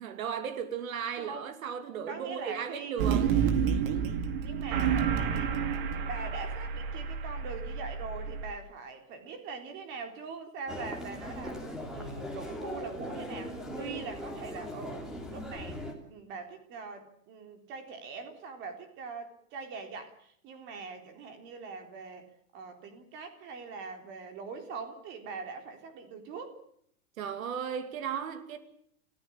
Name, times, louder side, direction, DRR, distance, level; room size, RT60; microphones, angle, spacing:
voice 1, 0.0-3.3 27.2-28.6, right 8 dB, 90° right, 2.7 m, -35 dB
voice 2, 2.1-3.0 4.4-5.6 6.1-26.6, right 4 dB, 30° right, 3.7 m, -42 dB
sound 1, 3.0-8.5, right 7 dB, 45° right, 2.5 m, -30 dB
Human voice, 10.7-15.9, equal, ahead, 3.0 m, -39 dB
28.5 x 15.0 x 8.8 m
supercardioid pair, 175°, 40 cm